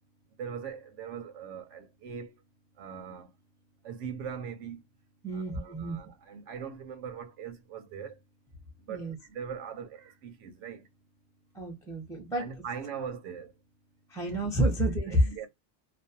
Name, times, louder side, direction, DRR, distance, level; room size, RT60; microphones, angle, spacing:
voice 1, 0.4-2.3 2.8-3.3 3.8-4.8 5.3-8.1 8.9-10.8 12.4-13.5 14.2-14.4 15.1-15.5, right 7 dB, 85° right, 0.9 m, -41 dB
voice 2, 5.2-6.0 8.9-9.2 11.5-12.6 14.1-15.3, right 1 dB, 5° left, 0.5 m, -29 dB
2.5 x 2.0 x 2.6 m
omnidirectional pair, 1.2 m